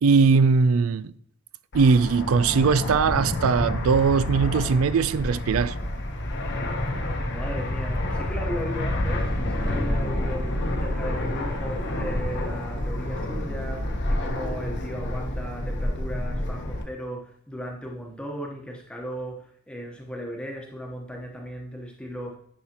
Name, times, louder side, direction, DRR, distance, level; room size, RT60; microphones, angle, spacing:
voice 1, 0.0-1.0 1.7-5.7, right 5 dB, 70° right, 0.4 m, -20 dB
Fixed-wing aircraft airplane, 1.7-16.8, left 1 dB, 55° left, 1.0 m, -28 dB
voice 2, 7.2-22.4, equal, 5° left, 1.1 m, -36 dB
10.0 x 5.7 x 2.9 m
head